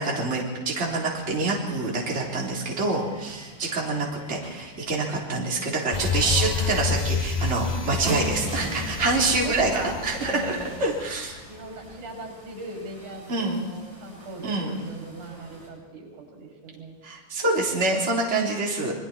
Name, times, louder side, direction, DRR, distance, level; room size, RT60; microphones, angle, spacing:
voice 1, 0.0-11.4 13.3-13.6 14.4-14.8 17.0-18.9, right 3 dB, 20° right, -3 dB, 3.7 m, -26 dB
sound 1, 0.7-15.7, equal, 40° right, 8.5 m, -41 dB
sound 2, 5.9-11.5 11.9-12.0, left 5 dB, 40° left, 0.5 m, -29 dB
voice 2, 9.4-10.8 11.5-17.0, right 2 dB, 85° right, 2 dB, 7.8 m, -40 dB
28.0 x 22.0 x 4.4 m, 1.3 s
omnidirectional pair, 3.5 m